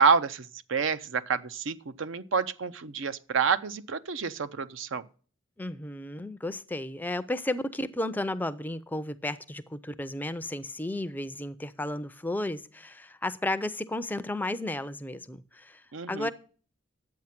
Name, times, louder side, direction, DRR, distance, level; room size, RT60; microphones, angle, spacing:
voice 1, 0.0-5.0 15.9-16.3, right 5 dB, 65° right, 0.6 m, -28 dB
voice 2, 5.6-16.3, left 1 dB, 10° left, 0.4 m, -33 dB
10.5 x 8.3 x 5.8 m
head